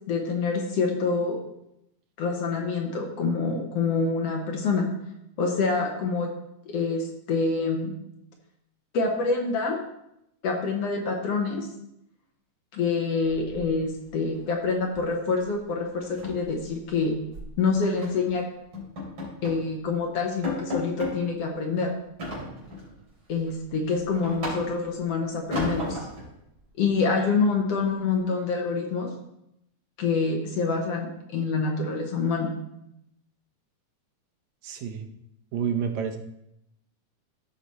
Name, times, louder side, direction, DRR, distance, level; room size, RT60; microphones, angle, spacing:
voice 1, 0.1-1.4 2.2-4.9 5.4-6.3 6.7-7.9 8.9-9.8 10.4-11.7 12.7-17.2 17.6-18.4 19.4-21.9 23.3-26.0 26.8-29.1 30.0-32.5, left 4 dB, 65° left, 2 dB, 1.7 m, -26 dB
sound 1, 13.3-14.1 14.4-14.6 14.9-15.1 15.4-15.5 15.9-17.5 18.0-18.3 18.7-19.7 20.0-20.1 20.4-21.2 22.2-22.9 23.4-25.0 25.5-26.3, left 2 dB, 40° right, 3.7 m, -34 dB
voice 2, 34.6-35.1 35.5-36.2, right 7 dB, 70° right, 5 dB, 2.0 m, -29 dB
14.0 x 5.0 x 4.1 m, 0.82 s
omnidirectional pair, 3.6 m